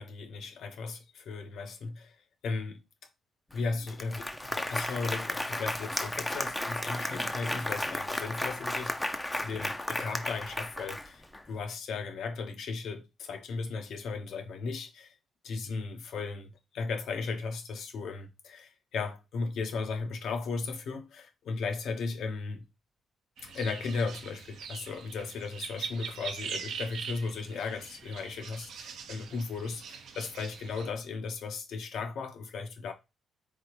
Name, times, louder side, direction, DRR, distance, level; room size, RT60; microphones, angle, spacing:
voice 1, 0.0-2.2 2.4-2.8 3.5-15.2 15.4-22.7 23.4-32.9, left 4 dB, 70° left, 0.8 m, -36 dB
Applause, 3.5-3.6 3.9-11.4, left 1 dB, 10° left, 0.5 m, -34 dB
sound 1, 23.4-30.9, right 6 dB, 70° right, 0.6 m, -42 dB
3.9 x 3.3 x 3.0 m
cardioid pair, 90°, 0 cm